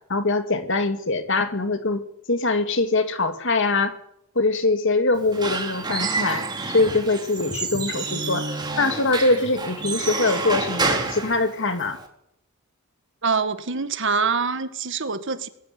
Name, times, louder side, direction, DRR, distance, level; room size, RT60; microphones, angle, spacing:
voice 1, 0.1-2.0 2.3-4.0 4.4-8.5 8.7-12.0, left 3 dB, 60° left, 8 dB, 2.3 m, -23 dB
Squeak / Wood, 5.1-12.1, right 3 dB, 20° right, 3.6 m, -29 dB
voice 2, 13.2-15.5, right 5 dB, 60° right, 10 dB, 1.8 m, -25 dB
20.5 x 15.0 x 9.5 m, 0.76 s
head